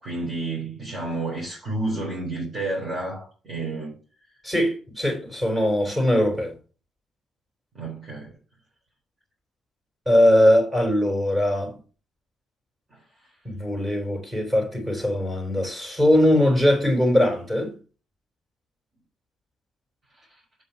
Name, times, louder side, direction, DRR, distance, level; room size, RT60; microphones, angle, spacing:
voice 1, 0.0-4.0 7.7-8.3 12.9-13.0, right 2 dB, 40° right, 4.0 m, -30 dB
voice 2, 4.4-6.5 10.1-11.8 13.4-17.7, left 1 dB, 15° right, 4.0 m, -21 dB
8.0 x 5.6 x 5.8 m
cardioid pair, 90°, 0 cm